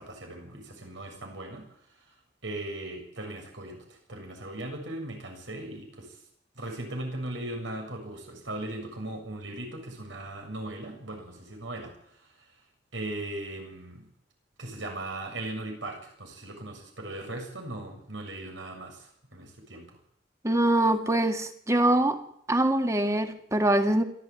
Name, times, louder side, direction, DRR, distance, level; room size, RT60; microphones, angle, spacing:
voice 1, 0.0-1.7 2.4-6.2 6.6-12.2 12.9-14.1 14.6-20.0, right 1 dB, 90° right, 3 dB, 7.4 m, -38 dB
voice 2, 20.4-22.2 22.5-24.0, right 1 dB, 15° right, 7 dB, 1.8 m, -23 dB
27.0 x 12.5 x 9.0 m, 0.71 s
head